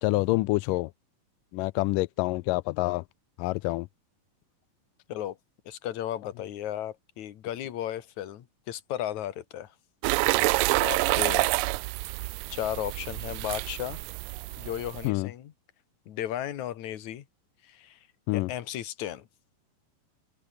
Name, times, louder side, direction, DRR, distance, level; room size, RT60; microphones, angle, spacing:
voice 1, 0.0-0.9 1.5-3.0 3.4-3.9 15.0-15.3 18.3-18.5, left 22 dB, 85° left, 1.9 m, -27 dB
voice 2, 5.7-9.7 10.8-11.5 12.5-14.0 14.6-15.5 16.1-17.2 17.6-18.0 18.3-19.3, left 11 dB, 60° left, 2.6 m, -35 dB
sound 1, 10.0-15.1, right 22 dB, 85° right, 1.9 m, -28 dB
omnidirectional pair, 4.3 m